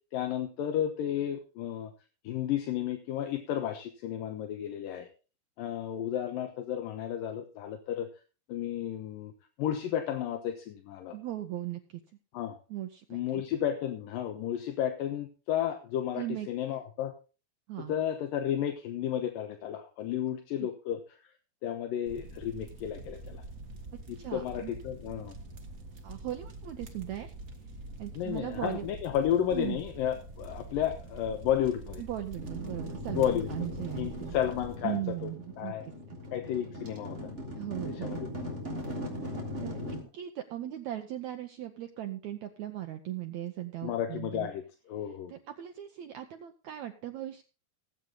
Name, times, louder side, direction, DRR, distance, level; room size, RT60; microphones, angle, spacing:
voice 1, 0.1-1.9 2.2-5.1 5.6-8.1 8.5-9.3 9.6-11.2 12.3-12.6 13.1-17.1 17.8-21.0 21.6-23.4 24.1-25.3 28.2-32.0 33.1-33.5 34.0-35.3 35.6-35.8 36.3-37.3 38.0-38.3 43.8-44.6 44.9-45.3, left 10 dB, 75° left, 5 dB, 2.6 m, -32 dB
voice 2, 11.1-12.0 12.7-13.4 16.1-16.5 17.7-17.9 20.6-20.7 24.2-24.7 26.0-27.3 28.0-28.9 29.5-29.8 32.0-34.3 34.8-35.7 36.1-36.2 37.6-38.2 39.6-39.8 40.1-44.5 45.3-47.4, right 13 dB, 75° right, 7 dB, 1.6 m, -38 dB
sound 1, 22.0-34.8, right 2 dB, 55° right, 0.9 m, -45 dB
sound 2, 32.4-40.0, left 1 dB, 20° right, 3.4 m, -39 dB
18.0 x 8.2 x 3.8 m, 0.33 s
omnidirectional pair, 4.3 m